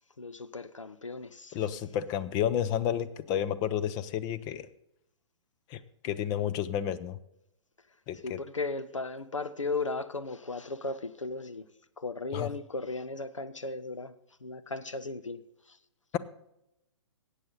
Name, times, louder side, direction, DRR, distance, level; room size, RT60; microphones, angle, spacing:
voice 1, 0.2-1.6 8.2-11.6 12.0-14.1 14.4-15.4 15.7-15.8, left 3 dB, 90° left, 12 dB, 0.8 m, -36 dB
voice 2, 1.5-4.7 5.7-7.2 8.1-8.4 12.3-12.5, left 10 dB, 25° left, 13 dB, 0.7 m, -31 dB
18.0 x 8.2 x 3.9 m, 0.83 s
figure-of-eight pair, 125°, 16 cm